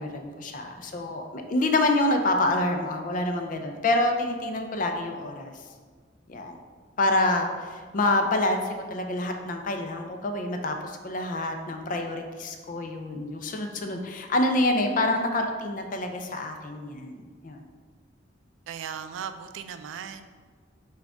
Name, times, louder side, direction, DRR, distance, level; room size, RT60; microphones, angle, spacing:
voice 1, 0.0-5.5 6.3-6.6 7.0-17.6, left 2 dB, 45° left, 4 dB, 0.4 m, -27 dB
voice 2, 18.7-20.3, right 7 dB, 85° right, 10 dB, 0.3 m, -37 dB
6.0 x 2.3 x 3.5 m, 1.6 s
head